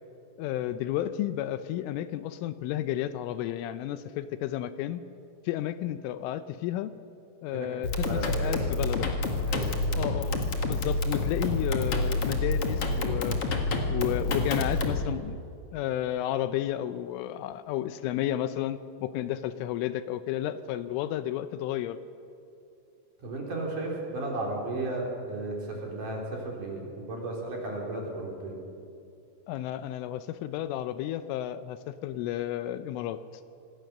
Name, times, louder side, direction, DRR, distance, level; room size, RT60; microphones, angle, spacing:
voice 1, 0.4-5.0 5.5-6.9 7.4-9.1 9.9-13.4 13.9-15.4 15.7-22.0 29.5-33.2, left 12 dB, 80° left, 12 dB, 3.2 m, -32 dB
sound 1, 7.8-15.1, left 2 dB, 60° left, 1.5 m, -28 dB
voice 2, 8.0-8.6 9.4-10.0 23.2-28.6, right 2 dB, 45° right, -1 dB, 4.6 m, -34 dB
26.5 x 20.0 x 6.7 m, 2.5 s
omnidirectional pair, 5.8 m